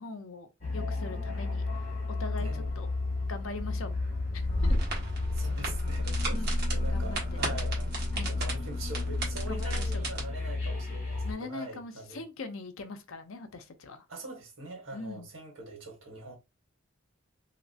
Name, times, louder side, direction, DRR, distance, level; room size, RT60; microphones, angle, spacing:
voice 1, 0.0-1.6 2.1-2.9 3.3-3.9 4.3-4.8 6.3-6.6 6.9-7.2 8.1-8.4 9.5-10.1 11.2-14.0 14.9-15.3, left 3 dB, 90° left, 0.7 m, -41 dB
sound 1, 0.6-11.3, left 3 dB, 40° left, 1.5 m, -33 dB
voice 2, 2.4-2.8 5.3-12.2 14.1-16.3, right 2 dB, 85° right, 1.4 m, -43 dB
sound 2, 4.4-10.2, right 1 dB, 55° right, 1.4 m, -33 dB
3.1 x 2.8 x 2.8 m
head